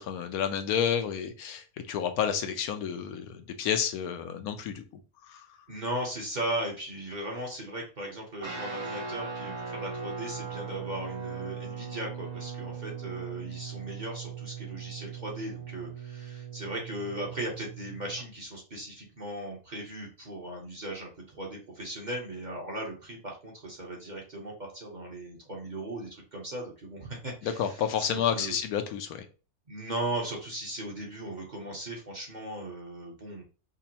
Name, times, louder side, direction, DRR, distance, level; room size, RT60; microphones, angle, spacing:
voice 1, 0.0-4.8 5.2-5.4 27.4-29.2, left 8 dB, 80° left, 8 dB, 1.1 m, -30 dB
voice 2, 5.7-27.8 28.1-28.6 29.7-33.4, right 1 dB, 35° right, -2 dB, 1.0 m, -37 dB
Guitar, 8.4-18.2, right 6 dB, 70° right, 2.2 m, -39 dB
5.1 x 2.3 x 2.8 m, 0.33 s
omnidirectional pair, 1.6 m